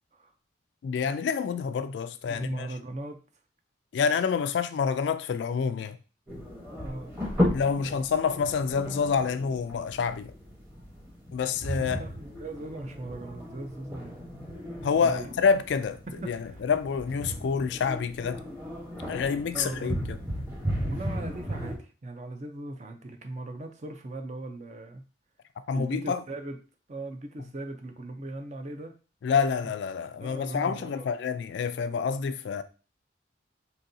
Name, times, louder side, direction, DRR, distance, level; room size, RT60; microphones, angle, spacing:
voice 1, 0.8-2.7 3.9-6.0 7.5-10.3 11.3-12.0 14.8-16.0 16.3-18.4 19.1-20.2 25.7-26.2 29.2-32.6, left 6 dB, 70° left, 0.3 m, -27 dB
voice 2, 2.3-3.2 6.7-7.2 7.8-8.0 11.8-14.2 15.0-15.3 16.1-16.6 19.5-19.9 20.8-25.0 25.7-26.6 26.9-29.0 29.6-29.7 30.2-31.1, right 2 dB, 40° right, 0.5 m, -39 dB
sound 1, 6.3-21.8, equal, 10° right, 1.0 m, -35 dB
3.9 x 2.7 x 2.6 m
head